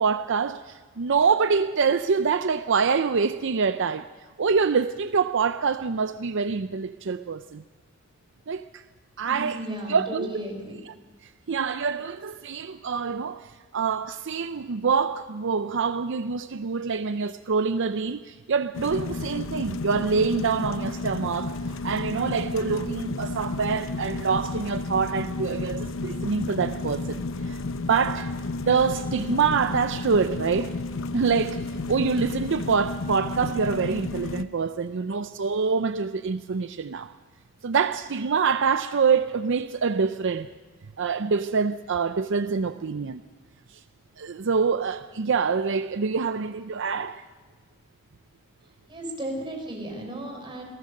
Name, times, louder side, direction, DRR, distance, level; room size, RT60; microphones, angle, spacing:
voice 1, 0.0-4.1 4.4-7.6 8.5-8.8 9.2-9.6 9.9-10.3 11.5-27.6 27.9-28.3 28.6-30.8 31.1-31.6 31.9-37.1 37.6-40.5 41.0-43.2 43.7-43.8 44.2-47.2, right 5 dB, 65° right, 0.6 m, -25 dB
voice 2, 9.2-10.8 48.6-50.6, right 1 dB, 25° right, 5.2 m, -35 dB
sound 1, 18.7-34.4, left 3 dB, 70° left, 0.8 m, -32 dB
28.0 x 18.0 x 6.5 m
head